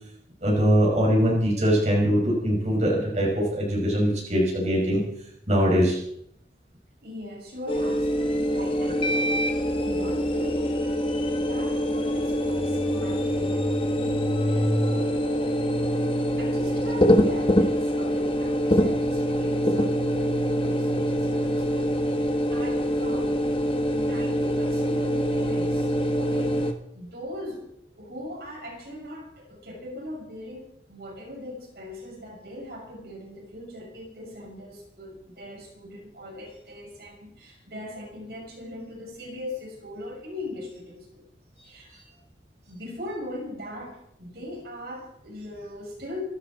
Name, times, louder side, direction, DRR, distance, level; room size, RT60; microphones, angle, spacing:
voice 1, 0.4-5.0 5.5-6.0, equal, 40° right, -3 dB, 5.5 m, -22 dB
voice 2, 7.0-10.8 11.4-13.6 13.9-15.7 16.4-23.5 23.9-25.9 26.2-26.6 26.9-41.2 41.6-42.0 42.7-46.2, left 1 dB, 60° right, -1 dB, 6.1 m, -40 dB
sound 1, 7.7-26.7, equal, 30° left, 1.6 m, -24 dB
26.5 x 12.5 x 4.3 m, 0.72 s
head